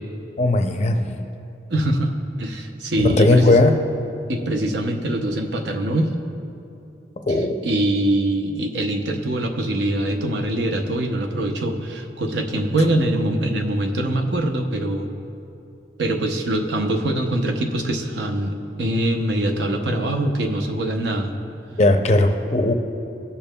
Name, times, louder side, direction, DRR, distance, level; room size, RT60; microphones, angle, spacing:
voice 1, 0.4-1.2 3.0-3.8 7.3-7.6 21.8-22.7, left 2 dB, 35° left, 5 dB, 0.5 m, -17 dB
voice 2, 1.7-2.1 2.4-3.6 4.3-6.1 7.6-15.1 16.0-21.3, right 1 dB, 80° right, 3 dB, 0.7 m, -23 dB
16.0 x 6.9 x 2.2 m, 2.8 s
head